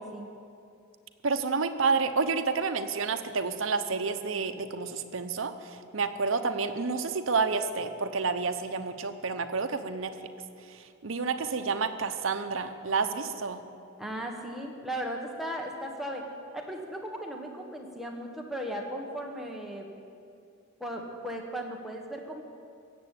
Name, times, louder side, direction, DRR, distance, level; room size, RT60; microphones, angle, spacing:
voice 1, 1.2-10.1 10.7-13.6, right 4 dB, 70° right, 7 dB, 0.8 m, -29 dB
voice 2, 14.0-16.3 16.5-19.9 20.8-22.4, equal, ahead, 0 dB, 1.3 m, -36 dB
15.5 x 7.7 x 8.4 m, 2.5 s
head